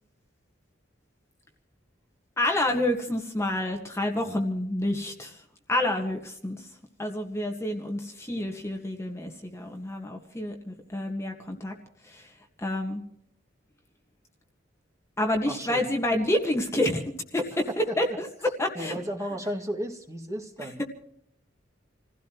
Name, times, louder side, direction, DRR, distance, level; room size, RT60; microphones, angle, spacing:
voice 1, 2.4-11.8 12.0-13.0 15.2-17.0 17.3-19.0 20.6-20.8, left 1 dB, 15° left, 2 dB, 1.7 m, -29 dB
voice 2, 15.5-15.9 17.9-18.0 18.7-20.8, equal, 15° right, 3 dB, 2.3 m, -34 dB
28.0 x 16.5 x 3.1 m, 0.71 s
head